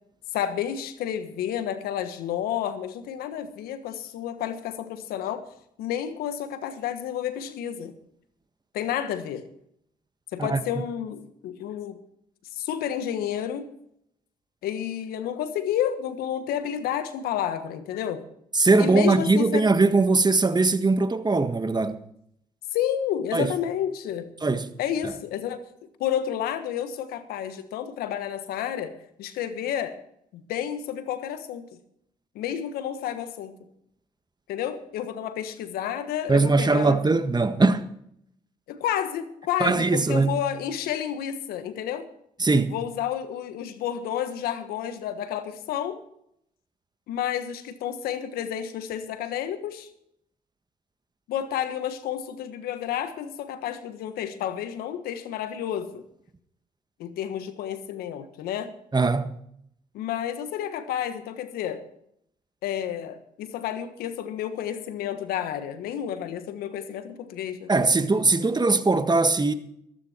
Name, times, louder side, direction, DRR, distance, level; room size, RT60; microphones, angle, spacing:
voice 1, 0.3-5.4 5.8-7.9 8.7-9.4 10.3-12.0 12.5-13.7 14.6-18.2 18.8-19.7 22.7-24.3 24.8-25.6 26.0-30.0 30.3-31.8 32.3-33.6 34.5-37.0 38.7-42.1 42.7-46.0 47.1-49.9 51.3-56.0 57.0-58.7 59.9-61.8 62.6-67.7, left 10 dB, 85° left, 1.4 m, -30 dB
voice 2, 18.5-22.0 23.3-23.5 24.4-24.7 36.3-37.8 39.6-40.4 42.4-42.7 58.9-59.3 67.7-69.5, right 3 dB, 25° right, 1.6 m, -21 dB
14.0 x 13.5 x 4.5 m
supercardioid pair, 50°, 15 cm